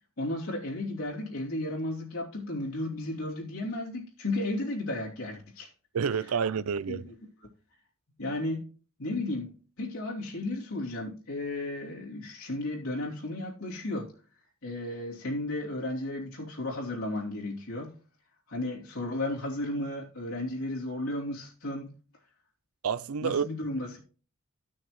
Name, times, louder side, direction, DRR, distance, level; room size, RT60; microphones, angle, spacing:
voice 1, 0.2-5.7 6.9-7.1 8.2-8.6 9.0-14.1 14.6-17.9 18.5-21.9 23.2-24.0, left 1 dB, 85° left, 2.8 m, -34 dB
voice 2, 5.9-7.1 22.8-23.5, right 6 dB, 85° right, 0.5 m, -29 dB
15.0 x 6.4 x 3.1 m
head